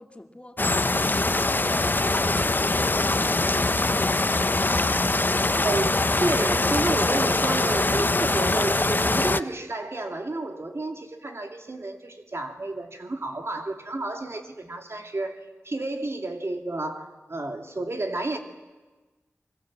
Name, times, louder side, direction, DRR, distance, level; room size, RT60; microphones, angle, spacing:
voice 1, 0.0-4.9, left 1 dB, 25° left, 4 dB, 2.5 m, -46 dB
sound 1, 0.6-9.4, left 2 dB, 40° left, 0.7 m, -23 dB
voice 2, 5.6-18.4, right 2 dB, 55° right, 4 dB, 2.8 m, -31 dB
25.0 x 24.0 x 7.7 m, 1.3 s
cardioid pair, 40°, 5 cm